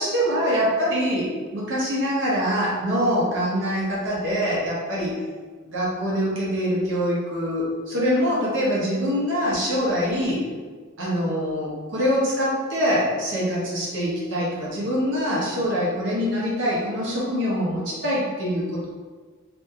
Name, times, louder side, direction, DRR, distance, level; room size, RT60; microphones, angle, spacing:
voice 1, 0.0-5.1 5.7-10.4 11.0-18.9, equal, 55° right, -6 dB, 0.9 m, -24 dB
2.7 x 2.7 x 2.4 m, 1.5 s
head